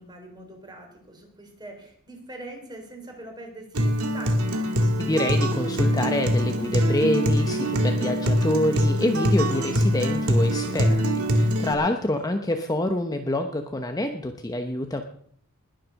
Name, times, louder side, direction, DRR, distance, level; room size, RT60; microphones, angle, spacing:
voice 1, 0.0-4.5 12.4-12.5, right 1 dB, 20° right, 3 dB, 4.0 m, -42 dB
Acoustic guitar, 3.7-11.7, equal, 75° right, 2.1 m, -23 dB
voice 2, 5.0-15.0, left 1 dB, 15° left, 5 dB, 1.0 m, -26 dB
20.5 x 7.7 x 6.5 m, 0.64 s
head